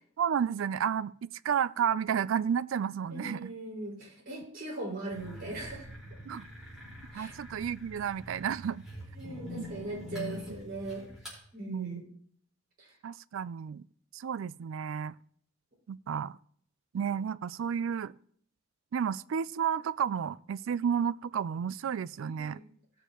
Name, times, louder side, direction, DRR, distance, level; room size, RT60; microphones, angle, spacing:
voice 1, 0.2-3.5 6.3-6.4 7.1-8.8 9.6-9.7 11.7-12.0 13.0-13.8 14.1-15.2 15.9-16.4 16.9-18.1 18.9-22.6, right 8 dB, 80° right, 0.3 m, -32 dB
voice 2, 3.1-5.9 7.1-7.3 9.2-11.1 11.5-12.0 12.8-12.9 22.2-22.6, right 2 dB, 50° right, 5.0 m, -40 dB
sound 1, 5.1-11.4, left 1 dB, 5° right, 4.4 m, -45 dB
18.0 x 6.9 x 3.0 m
head